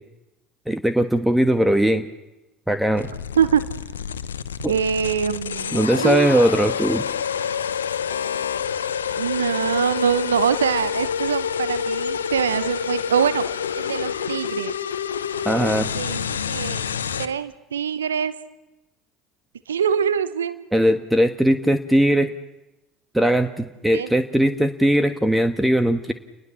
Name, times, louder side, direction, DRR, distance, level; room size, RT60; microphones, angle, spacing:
voice 1, 0.7-2.0 2.7-3.1 4.6-4.7 5.7-7.0 15.4-15.9 20.7-22.3 23.1-26.1, right 1 dB, 5° right, 9 dB, 1.5 m, -19 dB
sound 1, 3.0-17.2, left 7 dB, 85° left, 0.9 m, -27 dB
voice 2, 4.7-6.4 9.2-13.4 13.8-14.7 15.9-18.3 19.7-20.6 23.9-24.1, right 7 dB, 80° right, 14 dB, 0.8 m, -24 dB
29.0 x 20.5 x 7.5 m, 1.0 s
figure-of-eight pair, 60°, 0 cm